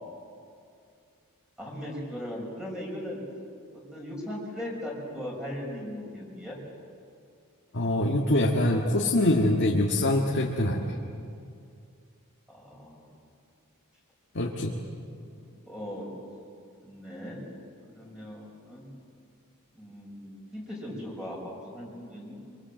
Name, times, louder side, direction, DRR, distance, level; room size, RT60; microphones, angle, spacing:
voice 1, 1.6-3.2 3.9-6.6 12.5-13.1 15.4-16.1 16.8-17.4 17.9-18.9 19.7-22.3, equal, 5° right, -3 dB, 5.7 m, -38 dB
voice 2, 7.7-10.9 14.4-14.7, left 1 dB, 55° left, -2 dB, 1.7 m, -24 dB
24.5 x 23.0 x 7.7 m, 2.4 s
head